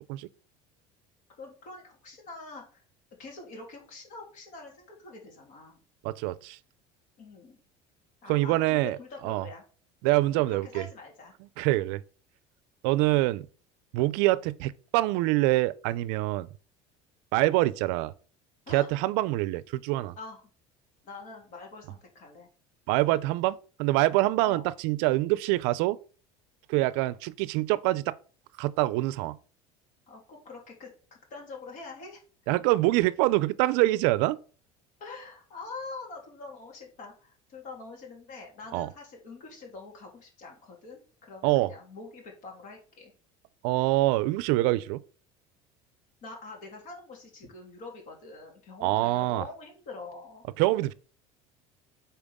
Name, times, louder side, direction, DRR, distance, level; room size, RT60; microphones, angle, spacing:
voice 1, 1.4-2.8 3.2-5.8 7.2-7.6 8.2-9.6 10.3-11.3 11.7-11.9 18.7-18.9 20.2-20.4 21.0-22.5 24.4-24.6 30.1-32.2 35.0-43.1 46.2-50.5, left 3 dB, 60° left, 3.1 m, -45 dB
voice 2, 6.0-6.6 8.3-9.0 9.2-9.4 10.0-10.9 11.6-12.0 12.8-13.5 13.9-16.5 17.3-18.1 18.7-20.1 22.9-26.0 26.7-28.1 28.6-29.4 32.5-34.4 38.7-38.9 41.4-41.7 43.6-45.0 48.8-49.4 50.6-50.9, right 18 dB, 75° right, 0.4 m, -25 dB
8.7 x 4.4 x 3.6 m
supercardioid pair, 120°, 14 cm